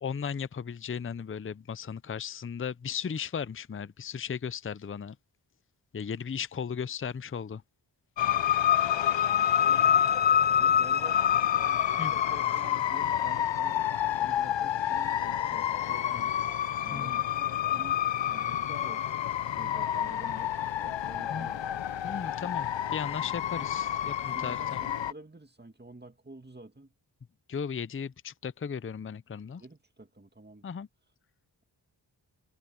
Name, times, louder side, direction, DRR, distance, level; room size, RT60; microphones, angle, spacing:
voice 1, 0.0-5.2 5.9-7.6 12.0-12.1 16.9-17.2 21.3-21.5 22.0-24.8 27.5-29.6 30.6-30.9, left 7 dB, 30° left, 0.6 m, -36 dB
sound 1, 8.2-25.1, left 10 dB, 80° left, 0.7 m, -28 dB
voice 2, 10.5-11.2 11.5-13.8 14.2-16.6 16.8-19.0 19.6-21.8 23.5-23.7 24.3-26.9 29.6-30.7, right 2 dB, 20° right, 2.2 m, -49 dB
cardioid pair, 55°, 44 cm